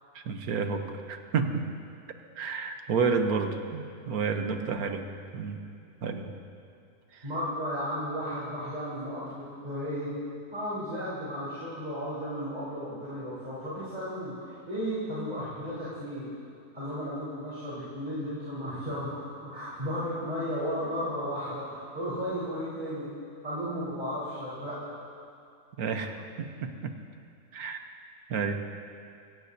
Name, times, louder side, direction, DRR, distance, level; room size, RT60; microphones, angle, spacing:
voice 1, 0.1-1.7 2.4-5.0 5.3-5.6 6.0-6.3 7.1-7.2 25.8-26.9 27.5-27.8 28.3-28.6, right 5 dB, 70° right, 6 dB, 1.4 m, -30 dB
voice 2, 7.2-10.1 10.5-16.3 16.7-23.1 23.4-24.8, equal, 25° right, -11 dB, 4.2 m, -34 dB
25.0 x 16.5 x 2.8 m, 2.4 s
omnidirectional pair, 1.7 m